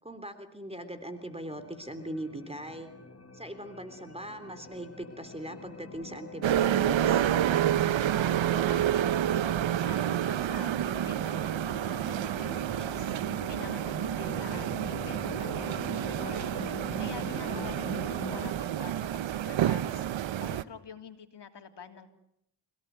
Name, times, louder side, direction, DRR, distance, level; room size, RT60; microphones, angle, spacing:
voice 1, 0.0-2.9 3.3-7.2 17.3-17.6, right 1 dB, 15° right, 9 dB, 3.5 m, -40 dB
sound 1, 0.8-18.5, left 3 dB, 35° left, 1.9 m, -44 dB
sound 2, 6.4-20.6, right 11 dB, 80° right, 1.0 m, -29 dB
voice 2, 8.1-9.4 9.8-16.5 17.0-17.9 18.3-22.1, left 6 dB, 65° left, 6 dB, 3.3 m, -47 dB
30.0 x 17.5 x 9.4 m, 0.77 s
cardioid pair, 50°, 45 cm